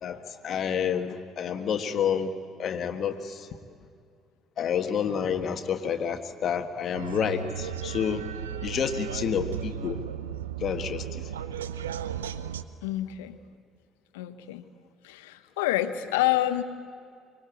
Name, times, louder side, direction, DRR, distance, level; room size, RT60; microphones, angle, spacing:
voice 1, 0.0-2.3 2.6-3.5 4.6-8.3 8.6-10.0 10.6-11.3, left 7 dB, 50° left, 7 dB, 1.6 m, -29 dB
sound 1, 6.9-12.6, right 9 dB, 85° right, 0.7 m, -35 dB
voice 2, 12.8-13.4 14.1-14.6 15.0-16.6, left 14 dB, 75° left, 11 dB, 1.1 m, -27 dB
24.5 x 21.5 x 8.4 m, 2.3 s
hypercardioid pair, 55°, 0 cm